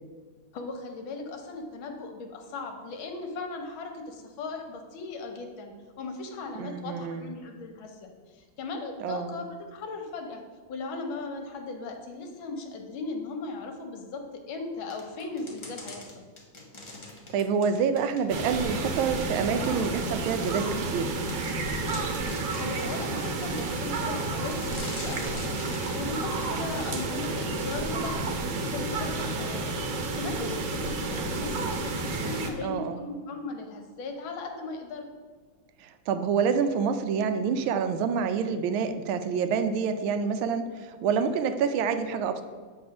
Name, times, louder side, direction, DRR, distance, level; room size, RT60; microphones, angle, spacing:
voice 1, 0.5-10.4 10.7-14.2 14.5-16.3 22.6-25.6 25.9-29.7 30.2-35.1, left 3 dB, 80° left, 4 dB, 1.7 m, -38 dB
voice 2, 6.6-7.3 9.0-9.4 17.3-21.1 32.6-33.0 35.8-42.4, right 6 dB, 90° right, 9 dB, 1.4 m, -27 dB
sound 1, 14.9-18.5 19.0-19.1 19.8-19.9 20.4-20.6 21.0-21.1 21.3-22.9 23.6-24.1 24.5-25.9, left 2 dB, 45° left, 0.4 m, -43 dB
sound 2, 18.3-32.5, right 3 dB, 70° right, 1.5 m, -31 dB
7.8 x 3.4 x 5.8 m, 1.5 s
omnidirectional pair, 2.2 m